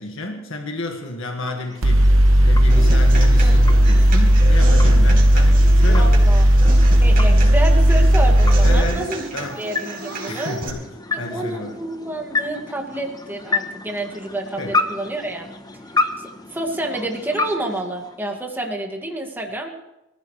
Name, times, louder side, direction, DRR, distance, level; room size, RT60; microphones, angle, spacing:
voice 1, 0.0-6.2 8.6-9.6 10.3-10.9 11.2-11.8 14.6-14.7, left 2 dB, 70° left, 2 dB, 1.9 m, -31 dB
sound 1, 0.9-18.7, left 3 dB, 20° left, 1.0 m, -31 dB
Mechanical fan, 1.8-8.8, equal, 75° right, 1.1 m, -13 dB
Human voice / Acoustic guitar, 2.7-10.7, right 2 dB, 45° right, 4.5 m, -32 dB
voice 2, 5.9-6.4 7.0-9.3 9.6-10.6 11.1-15.5 16.5-19.7, right 1 dB, 10° right, 1 dB, 2.2 m, -29 dB
25.5 x 15.5 x 3.3 m, 0.92 s
head